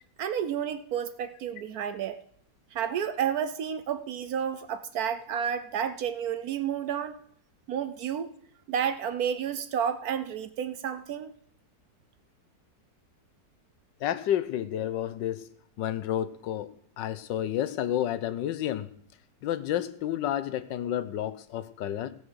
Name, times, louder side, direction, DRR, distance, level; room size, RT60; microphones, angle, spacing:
voice 1, 0.2-2.2 2.7-7.2 7.7-8.3 8.7-11.3, right 8 dB, 65° right, 11 dB, 1.0 m, -31 dB
voice 2, 14.0-18.9 19.4-22.1, left 11 dB, 80° left, 14 dB, 1.4 m, -30 dB
15.5 x 6.4 x 6.3 m, 0.64 s
omnidirectional pair, 2.0 m